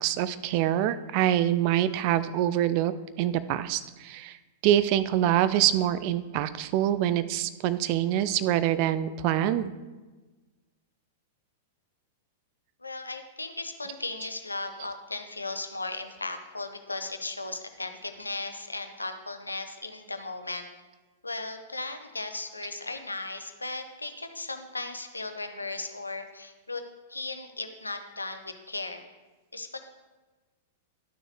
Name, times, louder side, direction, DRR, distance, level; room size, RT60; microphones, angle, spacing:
voice 1, 0.0-2.9 3.2-4.4 4.6-9.7, right 12 dB, 45° right, 14 dB, 0.4 m, -25 dB
voice 2, 12.8-20.7 21.2-26.8 27.1-29.1 29.5-29.8, left 2 dB, 85° left, 8 dB, 0.7 m, -36 dB
11.5 x 6.2 x 3.1 m, 1.2 s
figure-of-eight pair, 95°, 0 cm